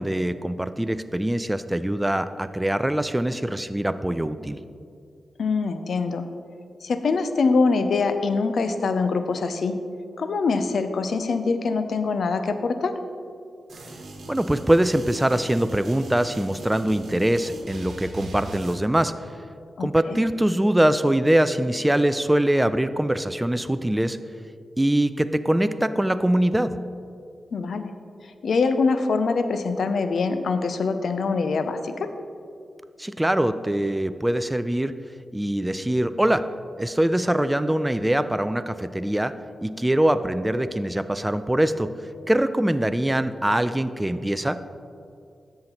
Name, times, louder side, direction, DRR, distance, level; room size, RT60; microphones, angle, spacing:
voice 1, 0.0-4.6 14.3-19.1 19.8-24.2 24.8-26.8 33.0-34.9 35.3-36.4 36.8-39.3 39.6-41.9 42.3-44.6, right 1 dB, 10° right, 11 dB, 0.3 m, -23 dB
voice 2, 5.4-6.2 6.8-9.8 10.2-13.0 19.8-20.2 27.5-27.9 28.2-32.1, left 4 dB, 70° left, 9 dB, 0.5 m, -24 dB
sound 1, 13.7-18.7, right 2 dB, 70° right, 1.1 m, -39 dB
13.0 x 5.7 x 3.0 m, 2.4 s
cardioid pair, 50°, 0 cm